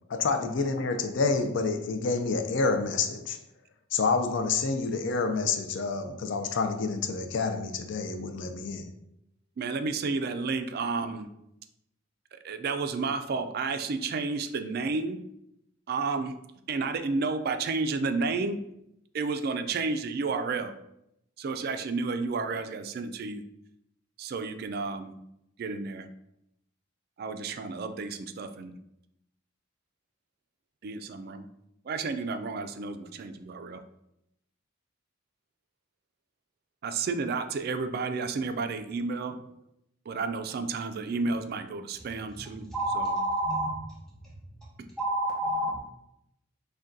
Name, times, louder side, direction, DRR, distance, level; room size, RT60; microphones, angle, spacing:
voice 1, 0.1-3.4 3.9-8.9, left 4 dB, 60° left, 0.4 m, -28 dB
voice 2, 9.6-11.3 12.3-15.2 15.9-16.3 16.7-18.6 19.1-20.7 21.4-23.4 24.2-25.1 25.6-26.1 27.2-28.8 30.8-31.5 31.8-33.8 36.8-39.4 40.1-42.7 42.9-43.1 44.8-44.9, right 4 dB, 50° right, 0.3 m, -31 dB
voice 3, 42.7-43.7 45.0-45.8, right 1 dB, ahead, 1.1 m, -28 dB
6.1 x 2.2 x 2.6 m
head